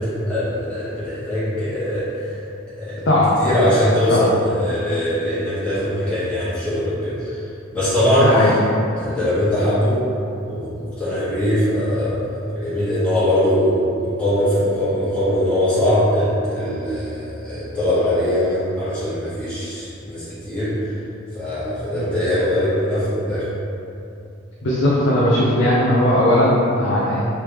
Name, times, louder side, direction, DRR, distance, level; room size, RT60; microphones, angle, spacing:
voice 1, 0.0-2.3 2.8-2.9 3.4-7.4 7.7-8.3 8.9-10.0 10.4-20.7 21.3-23.4, left 1 dB, 5° left, -15 dB, 1.4 m, -21 dB
voice 2, 8.2-8.6 21.9-22.0 24.6-27.2, left 1 dB, 60° left, -6 dB, 0.5 m, -17 dB
3.3 x 3.2 x 3.1 m, 2.7 s
head